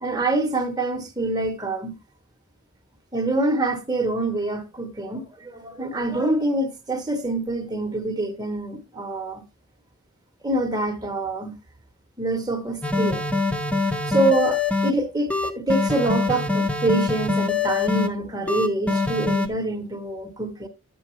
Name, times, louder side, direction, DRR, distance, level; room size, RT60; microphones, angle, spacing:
voice 1, 0.0-2.0 3.1-9.4 10.4-11.5 12.2-13.2 13.8-20.7, right 2 dB, 20° right, 1.1 m, -25 dB
sound 1, 12.8-14.9 15.3-18.1 18.5-19.5, left 3 dB, 5° left, 0.8 m, -24 dB
11.0 x 7.8 x 3.1 m
head